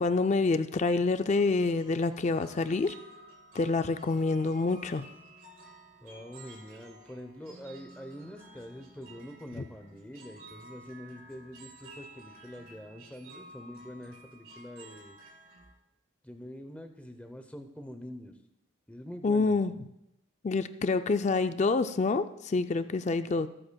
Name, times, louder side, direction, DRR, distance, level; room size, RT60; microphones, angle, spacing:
voice 1, 0.0-2.9 3.5-5.0 19.2-19.7 20.4-23.5, left 3 dB, 35° left, 10 dB, 0.4 m, -27 dB
sound 1, 0.8-15.7, right 1 dB, 80° right, 4.4 m, -53 dB
voice 2, 6.0-15.2 16.2-18.3 18.9-19.6, equal, 5° left, 6 dB, 0.7 m, -45 dB
22.0 x 7.8 x 2.3 m, 0.84 s
head